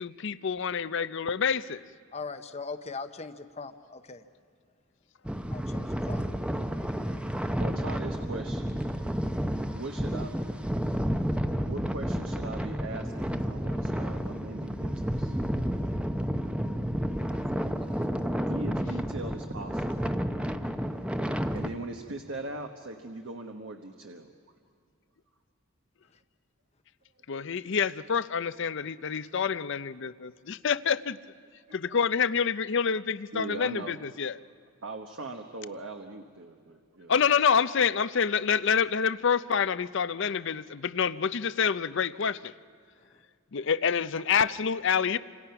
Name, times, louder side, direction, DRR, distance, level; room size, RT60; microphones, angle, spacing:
voice 1, 0.0-1.8 27.3-31.2 31.7-34.4 37.1-42.5 43.5-45.2, left 6 dB, 60° left, 16 dB, 0.6 m, -27 dB
voice 2, 2.1-4.2 5.5-6.3 11.6-11.7, left 4 dB, 30° left, 9 dB, 0.8 m, -40 dB
sound 1, 5.2-21.7, equal, 5° right, 0.7 m, -31 dB
voice 3, 7.6-8.8 9.7-10.4 11.7-15.3 17.3-17.4 18.4-20.1 21.5-24.3 31.8-32.0 33.3-34.0 34.8-37.1 45.0-45.2, right 2 dB, 65° right, 4 dB, 1.2 m, -40 dB
29.0 x 26.5 x 5.9 m, 2.2 s
head